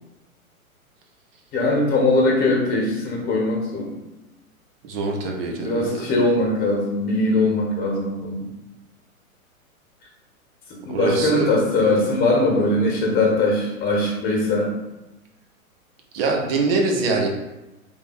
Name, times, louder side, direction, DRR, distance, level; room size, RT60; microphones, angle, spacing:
voice 1, 1.5-3.9 5.5-8.4 10.8-14.7, left 2 dB, 20° left, -2 dB, 1.4 m, -21 dB
voice 2, 4.9-6.0 10.9-12.0 16.1-17.3, right 3 dB, 40° right, 1 dB, 1.0 m, -24 dB
3.7 x 3.0 x 4.3 m, 0.99 s
figure-of-eight pair, 110°, 43 cm